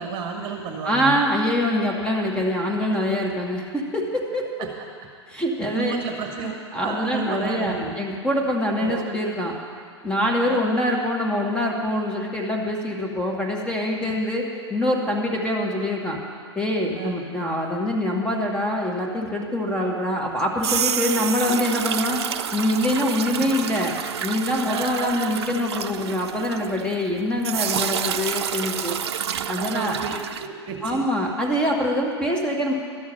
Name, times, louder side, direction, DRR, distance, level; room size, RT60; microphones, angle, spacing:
voice 1, 0.0-1.2 4.6-4.7 5.6-8.0 8.8-9.1 10.5-10.6 14.0-14.1 16.9-17.1 21.4-21.5 24.6-25.3 29.5-31.0, right 5 dB, 35° right, 1 dB, 1.6 m, -32 dB
voice 2, 0.8-4.4 5.3-6.0 6.7-9.5 10.0-14.4 14.7-16.2 16.6-22.2 22.5-23.9 24.2-29.0 29.5-30.0 30.8-32.7, left 1 dB, 5° left, -1 dB, 2.0 m, -24 dB
sound 1, 20.4-27.1 27.4-30.5, right 8 dB, 65° right, 0.6 m, -29 dB
12.5 x 7.1 x 8.9 m, 2.1 s
figure-of-eight pair, 100°, 15 cm